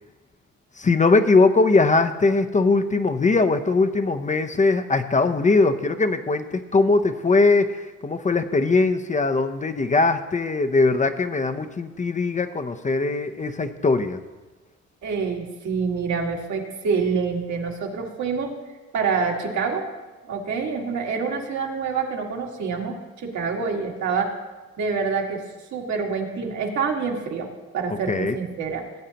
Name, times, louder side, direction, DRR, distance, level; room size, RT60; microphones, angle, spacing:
voice 1, 0.8-14.2 28.1-28.4, left 3 dB, 25° left, 9 dB, 0.6 m, -20 dB
voice 2, 15.0-18.5 18.9-19.9 20.3-24.4 24.8-25.4 25.7-27.5 27.7-28.9, right 5 dB, 70° right, 0 dB, 1.9 m, -26 dB
17.0 x 8.8 x 2.9 m, 1.2 s
cardioid pair, 90°, 30 cm